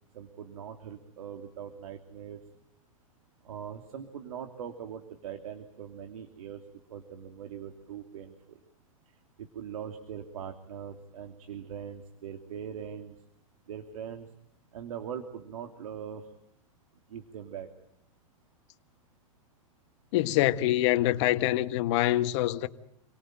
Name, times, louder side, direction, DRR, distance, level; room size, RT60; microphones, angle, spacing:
voice 1, 0.1-2.4 3.4-6.6 6.9-8.6 9.4-13.1 13.7-14.3 14.7-16.2 17.1-17.7, right 8 dB, 80° right, 2.7 m, -41 dB
voice 2, 20.1-22.7, left 15 dB, 55° left, 1.6 m, -25 dB
28.0 x 19.0 x 9.0 m
hypercardioid pair, 130°, 18 cm